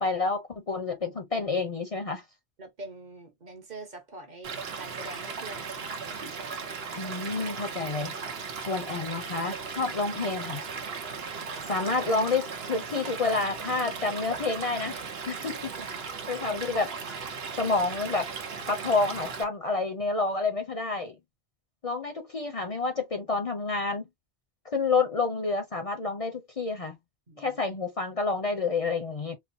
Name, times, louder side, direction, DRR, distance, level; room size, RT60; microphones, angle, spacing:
voice 1, 0.0-2.2 7.0-8.1 8.6-10.6 11.7-15.0 15.3-15.7 16.3-16.9 17.6-18.3 18.7-21.2 21.8-24.0 24.6-27.0 27.4-29.4, left 3 dB, 40° left, 0.6 m, -29 dB
voice 2, 2.6-5.9 6.2-6.3 11.6-11.9 15.8-15.9 27.3-27.6, right 2 dB, 45° right, 1.1 m, -44 dB
Stream / Liquid, 4.4-19.4, right 5 dB, 80° right, 1.0 m, -37 dB
4.2 x 2.1 x 2.6 m
omnidirectional pair, 1.0 m